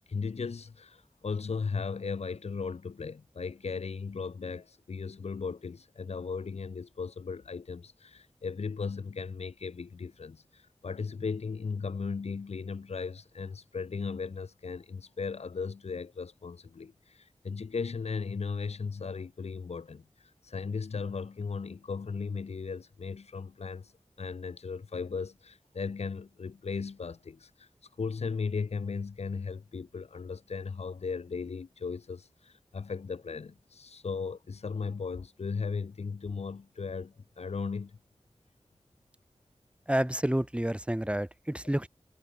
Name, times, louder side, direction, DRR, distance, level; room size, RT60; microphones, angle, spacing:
voice 1, 0.1-20.1 20.4-23.9 24.2-27.7 28.0-38.0, left 5 dB, 70° left, 0.6 m, -36 dB
voice 2, 39.9-41.9, right 1 dB, 10° right, 1.9 m, -29 dB
wide cardioid pair, 65°, 11 cm